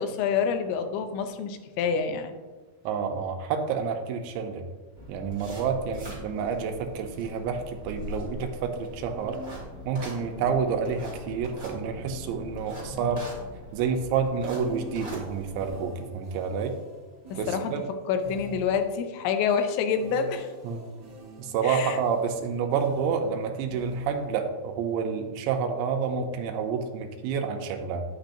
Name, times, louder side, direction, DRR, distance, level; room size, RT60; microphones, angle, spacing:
voice 1, 0.0-2.4 17.3-17.8 18.1-20.5 21.6-22.0, left 6 dB, 80° left, 7 dB, 3.0 m, -27 dB
voice 2, 2.8-4.6 5.1-9.4 9.9-13.2 13.7-16.8 17.3-17.8 20.6-20.8 21.4-28.1, right 6 dB, 80° right, 5 dB, 3.0 m, -29 dB
sound 1, 5.0-15.8, equal, 15° right, 2.4 m, -42 dB
sound 2, 9.2-11.0 11.8-13.8 14.5-19.1 19.9-24.4, equal, 40° right, 1.8 m, -44 dB
10.0 x 9.0 x 2.6 m, 1.3 s
omnidirectional pair, 5.2 m